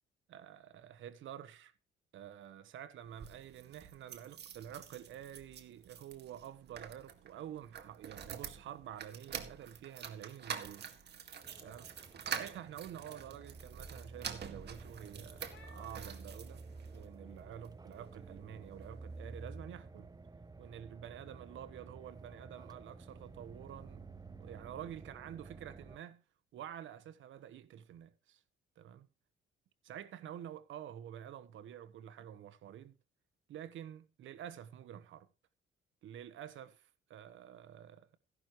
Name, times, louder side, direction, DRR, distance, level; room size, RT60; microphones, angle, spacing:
voice 1, 0.3-1.7 2.1-10.9 11.6-11.9 12.2-16.6 16.9-20.1 20.6-26.2 26.5-28.4 28.8-29.0 29.8-33.0 33.5-35.3 36.0-38.2, right 10 dB, 75° right, 1.2 m, -49 dB
sound 1, 3.0-17.1 17.6-18.5 18.8-18.9 19.1-19.2, right 7 dB, 60° right, 2.0 m, -47 dB
sound 2, 9.8-9.9 10.2-10.6 11.0-17.0, left 5 dB, 75° left, 4.1 m, -66 dB
sound 3, 11.4-26.0, right 3 dB, 20° right, 0.9 m, -52 dB
15.5 x 11.5 x 3.1 m
cardioid pair, 90°, 20 cm